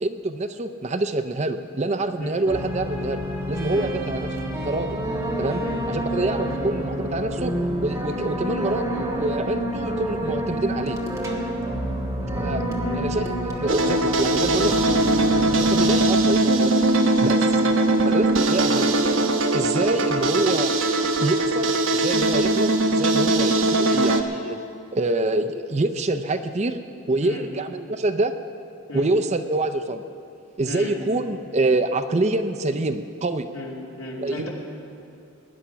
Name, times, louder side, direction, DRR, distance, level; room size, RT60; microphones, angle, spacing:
voice 1, 0.0-3.2 3.5-4.3 4.6-5.0 5.4-7.5 7.8-11.0 12.4-12.7 12.9-14.7 15.5-16.8 17.2-17.6 18.0-19.0 19.5-20.7 21.2-24.6 24.9-26.8 27.1-28.3 28.9-30.0 30.6-33.5 34.2-34.5, right 2 dB, 30° right, 8 dB, 0.5 m, -26 dB
sound 1, 2.5-16.1, equal, 15° right, 1.4 m, -28 dB
sound 2, 13.7-24.2, right 2 dB, 60° right, 0.9 m, -20 dB
voice 2, 23.8-24.2 27.2-27.5 28.9-29.1 30.7-31.0 33.5-34.5, left 2 dB, 70° left, -3 dB, 2.6 m, -36 dB
19.0 x 10.0 x 5.7 m, 2.4 s
head